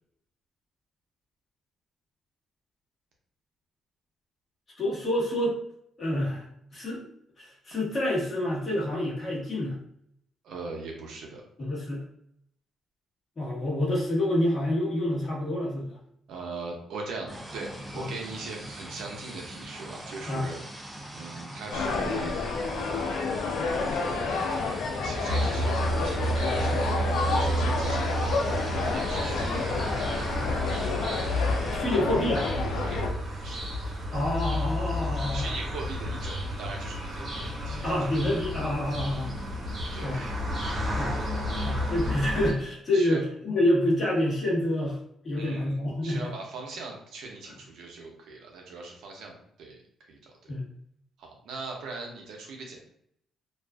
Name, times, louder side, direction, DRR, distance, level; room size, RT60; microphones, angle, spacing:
voice 1, 4.8-5.6 6.0-6.5 6.7-7.1 7.4-9.8 11.6-12.0 13.4-15.9 17.9-18.1 20.3-20.5 31.7-32.5 34.1-35.5 37.8-39.3 40.0-40.2 41.0-41.2 41.6-45.0 45.2-46.3 50.5-50.6, left 1 dB, 35° left, -7 dB, 1.2 m, -27 dB
voice 2, 10.4-11.4 16.3-20.6 21.1-22.4 25.0-27.0 27.3-29.9 30.5-31.4 31.9-32.0 32.8-33.0 33.4-33.6 35.3-38.2 39.9-40.4 40.7-41.1 41.5-41.9 42.9-43.2 45.4-45.8 46.0-50.5 51.2-52.8, right 3 dB, 80° right, 1 dB, 0.6 m, -41 dB
sound 1, 17.3-31.8, right 1 dB, 10° right, 0.4 m, -42 dB
sound 2, 21.7-33.1, left 4 dB, 85° left, 0.4 m, -29 dB
sound 3, 25.3-42.5, equal, 45° right, 0.9 m, -31 dB
2.4 x 2.4 x 2.3 m, 0.70 s
cardioid pair, 90°, 0 cm